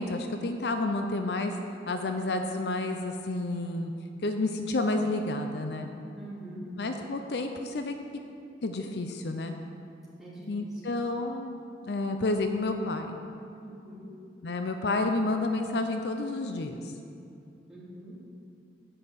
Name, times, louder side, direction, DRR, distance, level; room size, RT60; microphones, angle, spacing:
voice 1, 0.0-1.6 1.9-3.9 4.2-5.9 6.8-7.9 8.6-9.5 10.5-13.2 14.4-16.8, left 2 dB, 70° left, 5 dB, 0.6 m, -30 dB
voice 2, 6.1-6.7 10.2-10.8 13.6-14.1 17.7-18.2, right 1 dB, ahead, -9 dB, 2.6 m, -44 dB
10.0 x 5.6 x 8.1 m, 2.6 s
head